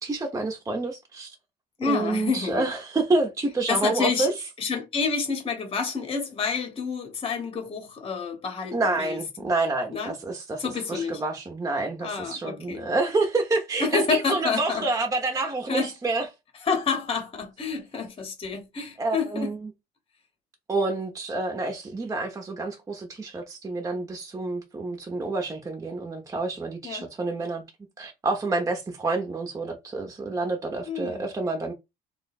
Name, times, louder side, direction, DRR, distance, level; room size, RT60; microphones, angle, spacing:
voice 1, 0.0-1.3 1.8-4.3 8.7-10.6 10.9-16.3 19.0-19.6 20.7-27.6 28.0-31.7, right 3 dB, 20° right, 0.7 m, -28 dB
voice 2, 1.8-2.7 3.7-4.3 4.6-9.2 9.9-10.1 10.6-11.2 12.0-12.9 13.8-14.9 15.7-15.9 16.6-19.5 26.8-27.0 30.9-31.3, left 5 dB, 30° left, 1.0 m, -28 dB
2.8 x 2.2 x 4.1 m
cardioid pair, 105°, 18 cm